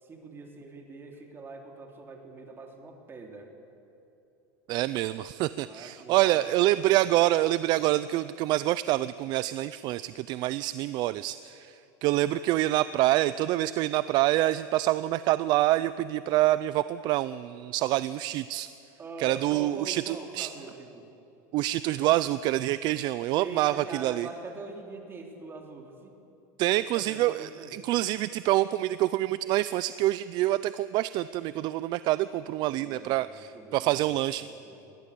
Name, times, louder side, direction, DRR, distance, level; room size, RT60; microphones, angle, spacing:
voice 1, 0.0-3.5 5.5-6.6 7.0-7.1 19.0-21.1 23.4-26.1 26.9-27.8 32.8-34.2 34.5-35.0, right 3 dB, 25° right, 2 dB, 3.2 m, -43 dB
voice 2, 4.7-18.7 19.2-20.5 21.5-24.3 26.6-34.5, right 15 dB, 50° right, 16 dB, 0.5 m, -26 dB
21.5 x 17.0 x 8.4 m, 2.8 s
supercardioid pair, 135°, 10 cm